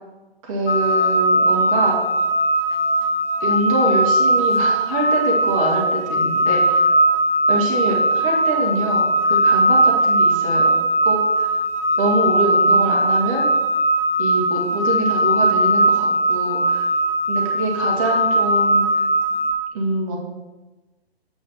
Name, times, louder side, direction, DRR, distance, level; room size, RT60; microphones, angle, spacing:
voice 1, 0.4-2.0 3.4-6.8 7.5-10.7 11.1-11.5 12.0-13.5 14.2-16.8 17.3-18.9 19.7-20.2, right 2 dB, 30° right, -1 dB, 1.7 m, -24 dB
sound 1, 0.7-19.5, right 1 dB, 65° left, 1.0 m, -19 dB
8.4 x 5.8 x 3.5 m, 1.1 s
figure-of-eight pair, 135°, 32 cm